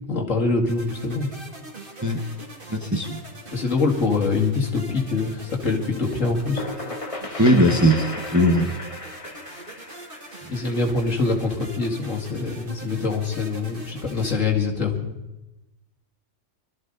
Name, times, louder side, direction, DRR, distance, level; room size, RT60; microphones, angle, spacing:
voice 1, 0.1-1.3 3.5-6.6 10.5-15.2, left 4 dB, 70° left, 0 dB, 2.6 m, -24 dB
sound 1, 0.7-14.4, right 1 dB, 40° right, 2.9 m, -42 dB
voice 2, 2.7-3.2 7.4-8.7, equal, 15° right, 4 dB, 1.1 m, -19 dB
sound 2, 6.1-11.7, left 2 dB, 25° left, 1.3 m, -35 dB
23.0 x 13.5 x 4.0 m, 0.97 s
omnidirectional pair, 1.4 m